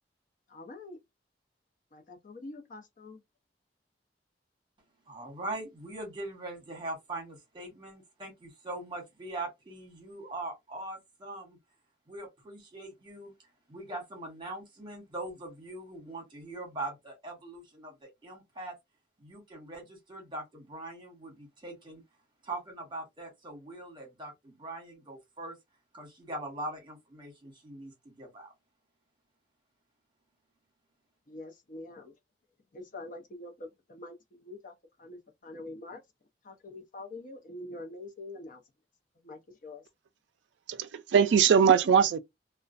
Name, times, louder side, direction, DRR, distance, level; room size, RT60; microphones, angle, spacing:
voice 1, 0.5-1.0 1.9-3.2 31.3-32.1 32.7-36.0 36.4-38.6 39.2-39.9, left 2 dB, 50° left, 0.7 m, -45 dB
voice 2, 5.1-11.6 12.1-13.3 13.7-18.8 19.2-22.0 22.4-25.6 25.9-28.5, right 2 dB, 25° right, 1.1 m, -41 dB
voice 3, 40.7-42.2, right 7 dB, 75° right, 0.3 m, -21 dB
2.4 x 2.2 x 2.4 m
head